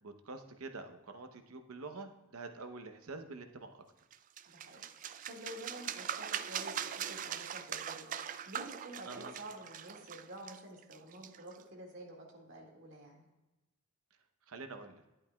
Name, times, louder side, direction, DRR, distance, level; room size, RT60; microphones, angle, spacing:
voice 1, 0.0-3.8 9.1-9.3 14.5-15.0, right 3 dB, 85° right, 7 dB, 0.8 m, -46 dB
sound 1, 4.1-11.6, right 9 dB, 40° right, 0.3 m, -41 dB
voice 2, 4.5-13.3, right 1 dB, 60° right, 0 dB, 1.9 m, -50 dB
11.0 x 8.8 x 2.3 m, 1.0 s
head